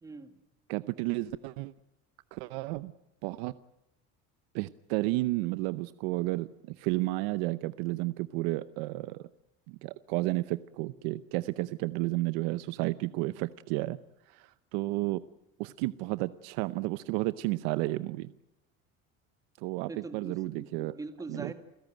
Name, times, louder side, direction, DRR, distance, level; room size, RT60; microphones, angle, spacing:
voice 1, 0.0-0.4 19.9-21.5, right 3 dB, 10° right, 8 dB, 1.8 m, -42 dB
voice 2, 0.7-1.7 2.3-2.9 3.2-3.5 4.5-9.2 9.7-14.0 14.3-15.2 15.6-18.3 19.6-20.9 21.3-21.5, right 19 dB, 85° right, 14 dB, 0.8 m, -32 dB
29.0 x 16.5 x 9.0 m, 0.99 s
cardioid pair, 175°, 30 cm